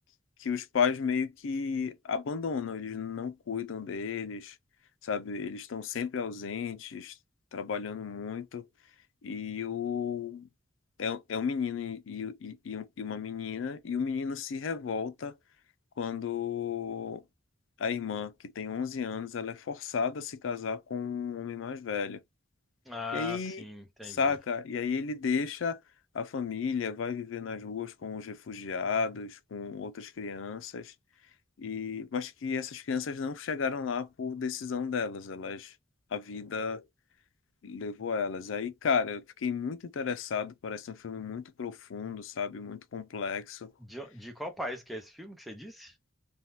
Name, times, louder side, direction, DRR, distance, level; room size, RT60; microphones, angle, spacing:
voice 1, 0.4-4.6 5.0-7.2 7.5-8.7 9.2-10.5 11.0-15.4 16.0-17.2 17.8-22.2 23.1-23.6 24.0-25.8 26.1-30.9 31.6-35.7 36.1-36.8 37.6-43.7, left 6 dB, 85° left, 0.4 m, -33 dB
voice 2, 22.9-24.4 43.8-46.0, left 2 dB, ahead, 0.5 m, -40 dB
3.3 x 2.3 x 2.7 m
head